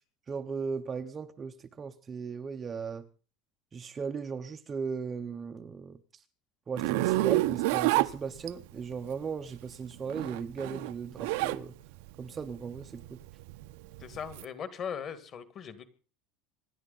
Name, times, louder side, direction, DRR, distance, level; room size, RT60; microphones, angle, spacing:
voice 1, 0.3-3.1 3.7-6.0 6.7-11.7 12.2-13.2, right 5 dB, 15° right, 0.7 m, -37 dB
Zipper (clothing), 6.8-8.8 10.0-11.6 12.0-14.4, right 19 dB, 65° right, 0.7 m, -28 dB
voice 2, 14.0-15.8, left 7 dB, 25° left, 1.7 m, -39 dB
26.0 x 11.0 x 4.0 m
cardioid pair, 180°, 0 cm